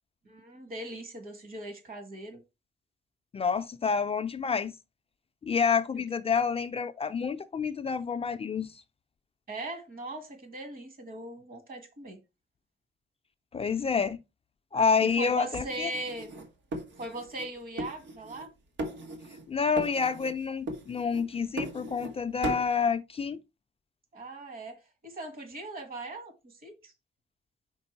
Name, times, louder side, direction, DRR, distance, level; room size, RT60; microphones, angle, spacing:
voice 1, 0.3-2.4 9.5-12.2 15.0-16.3 17.0-18.5 24.1-26.9, right 2 dB, 50° right, 1.9 m, -40 dB
voice 2, 3.3-4.7 5.4-8.7 13.5-14.2 14.7-15.9 19.5-23.4, left 5 dB, 30° left, 0.4 m, -28 dB
sound 1, 15.5-17.5 17.8-18.5 18.8-19.5 19.8-20.4 20.7-22.1 22.4-22.7, right 1 dB, 85° right, 1.4 m, -38 dB
5.2 x 4.7 x 4.5 m
wide cardioid pair, 160°, 19 cm